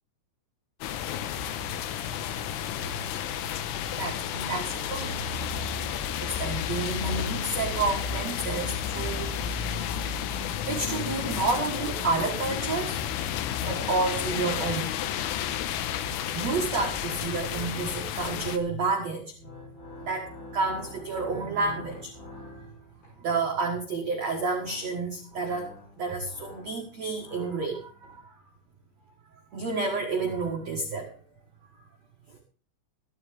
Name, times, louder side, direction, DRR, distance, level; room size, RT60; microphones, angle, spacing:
sound 1, 0.8-18.6, left 9 dB, 80° left, 3.5 m, -31 dB
voice 1, 4.0-5.2 5.6-5.8 6.2-9.6 10.6-13.1 13.6-15.3 16.3-19.3 20.0-22.6 23.2-25.7 26.0-28.4 29.5-31.2, right 3 dB, 75° right, 1 dB, 1.5 m, -30 dB
sound 2, 19.2-23.3 24.2-28.2, left 2 dB, 45° left, 7.1 m, -47 dB
15.5 x 12.5 x 3.5 m, 0.42 s
omnidirectional pair, 5.7 m